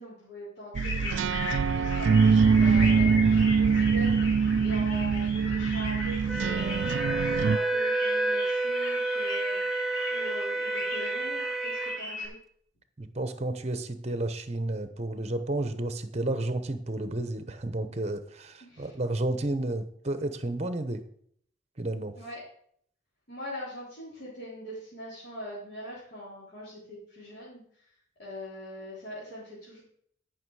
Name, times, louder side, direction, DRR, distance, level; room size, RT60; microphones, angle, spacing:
voice 1, 0.0-4.3 4.6-6.8 7.1-9.6 10.1-12.4 18.6-18.9 22.2-22.4 23.3-27.6 28.2-29.8, equal, 55° left, -9 dB, 3.7 m, -42 dB
sound 1, 0.7-12.3, left 2 dB, 80° left, 4.0 m, -37 dB
sound 2, 0.8-7.6, right 5 dB, 75° right, 0.4 m, -23 dB
Wind instrument woodwind instrument, 6.3-12.0, right 3 dB, ahead, 0.5 m, -30 dB
voice 2, 13.0-21.0 21.8-22.1, right 2 dB, 35° right, 10 dB, 0.9 m, -31 dB
14.5 x 6.0 x 4.8 m, 0.64 s
head